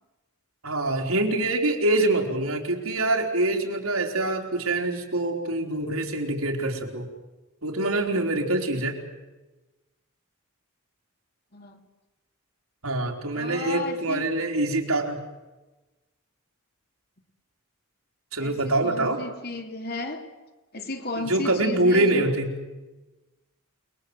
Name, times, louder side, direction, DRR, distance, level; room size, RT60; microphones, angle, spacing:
voice 1, 0.6-7.1 7.6-9.0 12.8-15.2 18.3-19.2 21.2-22.5, right 2 dB, 85° right, 1 dB, 4.1 m, -25 dB
voice 2, 13.3-14.2 18.4-20.3 20.7-22.3, left 2 dB, 45° left, 4 dB, 3.0 m, -34 dB
29.0 x 22.0 x 8.1 m, 1.1 s
head